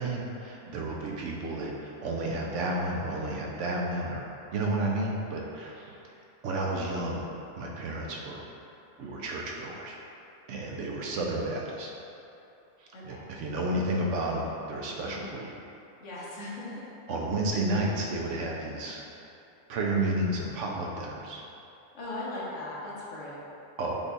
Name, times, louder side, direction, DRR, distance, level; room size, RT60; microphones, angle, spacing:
voice 1, 0.0-4.3 4.5-6.0 6.4-7.2 7.6-8.5 9.0-10.0 10.5-11.9 13.0-15.5 17.1-19.0 19.7-21.4 23.8-24.0, right 2 dB, 80° right, -1 dB, 1.0 m, -31 dB
voice 2, 12.9-13.2 15.0-15.3 16.0-16.9 21.9-23.4, left 2 dB, 75° left, -7 dB, 1.3 m, -38 dB
5.1 x 2.4 x 3.9 m, 2.8 s
omnidirectional pair, 1.3 m